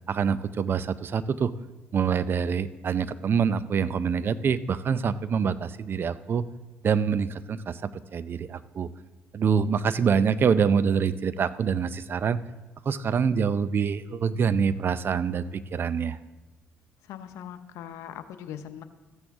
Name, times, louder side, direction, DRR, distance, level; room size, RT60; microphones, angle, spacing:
voice 1, 0.1-1.5 1.9-6.4 6.8-8.9 9.3-12.4 12.9-16.2, right 6 dB, 45° right, 15 dB, 0.5 m, -25 dB
voice 2, 17.0-18.8, left 10 dB, 80° left, 10 dB, 0.7 m, -40 dB
14.5 x 7.9 x 3.6 m, 1.2 s
supercardioid pair, 70°, 5 cm